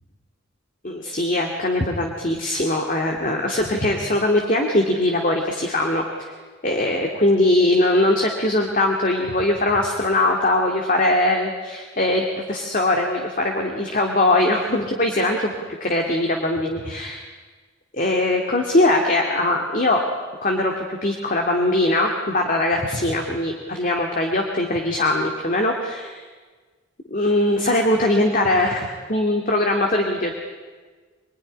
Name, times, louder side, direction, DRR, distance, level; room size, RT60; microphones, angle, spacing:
voice 1, 0.8-6.3 6.6-15.5 15.8-17.2 17.9-20.0 20.4-26.2 27.1-30.3, left 1 dB, 40° left, 2 dB, 2.1 m, -21 dB
26.5 x 21.0 x 10.0 m, 1.4 s
head